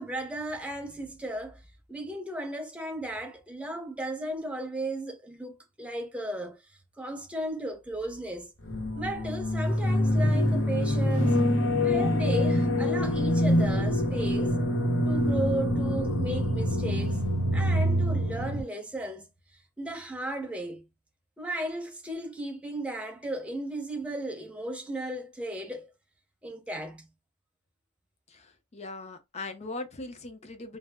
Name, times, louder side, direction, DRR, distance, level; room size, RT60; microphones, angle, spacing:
voice 1, 0.0-1.6 1.9-6.6 7.0-8.5 9.0-11.4 11.8-14.5 15.0-17.2 17.5-19.3 19.8-20.9 21.4-25.9 26.4-27.1, right 1 dB, 5° right, 0.6 m, -35 dB
sound 1, 8.7-18.6, left 1 dB, 70° left, 0.8 m, -25 dB
voice 2, 28.7-30.8, left 2 dB, 30° left, 0.5 m, -39 dB
2.0 x 2.0 x 3.4 m
head